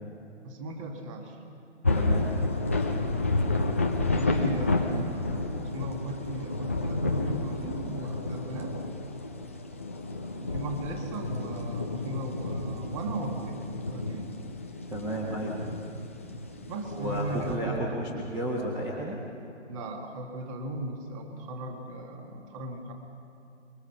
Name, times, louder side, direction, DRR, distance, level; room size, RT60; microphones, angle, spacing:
voice 1, 0.4-1.4 4.1-8.8 10.3-13.6 13.9-14.3 16.7-18.0 19.7-22.9, right 2 dB, 25° right, 3 dB, 2.1 m, -37 dB
sound 1, 1.8-17.6, left 2 dB, 10° left, 0.4 m, -30 dB
voice 2, 1.9-2.3 14.9-15.6 16.9-19.2, right 1 dB, 10° right, -2 dB, 1.5 m, -32 dB
25.5 x 22.0 x 5.9 m, 2.8 s
figure-of-eight pair, 145°, 36 cm